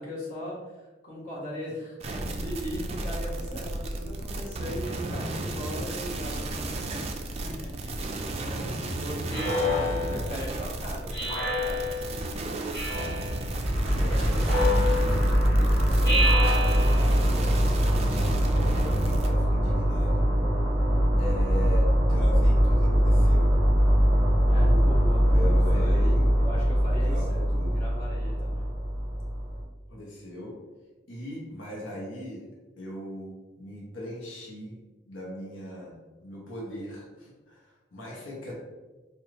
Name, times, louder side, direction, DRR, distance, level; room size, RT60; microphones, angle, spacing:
voice 1, 0.0-8.0 8.4-12.3 24.5-26.0 26.4-27.4 27.7-28.7, equal, 45° left, -7 dB, 1.2 m, -39 dB
sound 1, 2.0-19.3, right 2 dB, 30° right, 0.3 m, -33 dB
voice 2, 9.3-10.5 13.9-17.3 18.0-20.3 21.2-23.6 24.4-26.3 27.0-27.8 29.9-30.6 31.1-32.5 32.8-34.7 35.0-36.0 36.2-38.5, left 1 dB, 85° left, -4 dB, 0.8 m, -39 dB
Speech synthesizer, 9.3-10.4 11.1-12.1 12.7-13.4 14.4-15.3 16.0-17.2, left 1 dB, 15° left, 1.1 m, -28 dB
sound 2, 13.4-29.6, equal, 5° right, 1.3 m, -22 dB
3.6 x 2.3 x 3.1 m, 1.2 s
head